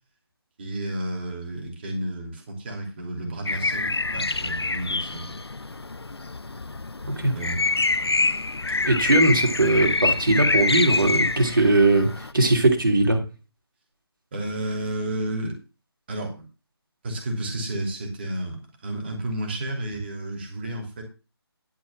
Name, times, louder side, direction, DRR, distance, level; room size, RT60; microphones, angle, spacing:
voice 1, 0.6-5.4 7.3-7.6 14.3-15.6 16.1-16.5 17.0-21.0, right 1 dB, 25° right, 2 dB, 2.8 m, -31 dB
sound 1, 3.5-12.3, left 3 dB, 75° left, 0.6 m, -26 dB
voice 2, 8.8-13.2, right 2 dB, 55° right, 3 dB, 2.9 m, -20 dB
11.5 x 4.3 x 7.3 m, 0.31 s
figure-of-eight pair, 155°, 13 cm